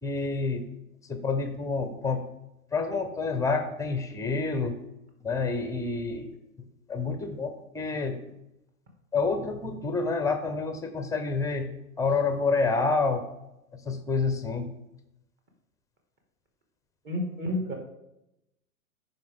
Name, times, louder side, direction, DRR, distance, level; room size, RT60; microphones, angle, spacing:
voice 1, 0.0-0.7 1.1-2.2 2.7-4.8 5.2-6.3 6.9-8.2 9.1-11.7 12.0-13.2 13.8-14.7, left 4 dB, 5° left, 8 dB, 0.8 m, -28 dB
voice 2, 17.0-17.7, left 1 dB, 25° right, 1 dB, 2.2 m, -30 dB
14.0 x 5.6 x 3.7 m, 0.88 s
hypercardioid pair, 115°, 45 cm